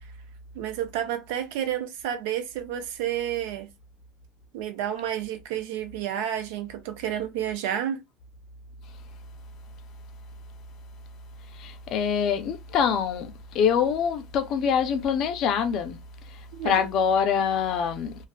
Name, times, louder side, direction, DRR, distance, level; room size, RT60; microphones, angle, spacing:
voice 1, 0.5-3.7 4.5-8.0 16.5-16.9, right 10 dB, 85° right, 0.7 m, -30 dB
voice 2, 11.5-16.0 16.3-18.2, left 7 dB, 55° left, 0.5 m, -25 dB
2.5 x 2.4 x 2.3 m
cardioid pair, 130°, 0 cm